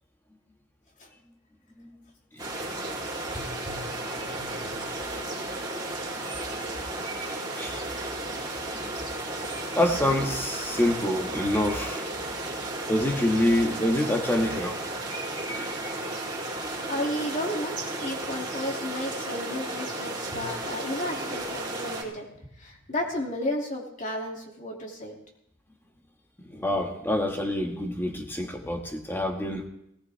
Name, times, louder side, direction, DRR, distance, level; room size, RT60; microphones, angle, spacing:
voice 1, 2.4-3.1 3.4-3.8 4.2-4.5 4.7-4.8 6.6-6.7 7.6-7.9 8.8-8.9 9.8-12.0 12.9-14.8 20.3-20.4 26.4-29.7, left 1 dB, 10° left, 2 dB, 1.8 m, -27 dB
sound 1, 2.4-22.0, right 2 dB, 25° right, 3.5 m, -34 dB
voice 2, 16.8-25.2, left 1 dB, 40° left, 0 dB, 2.8 m, -33 dB
18.5 x 18.0 x 3.5 m, 0.79 s
head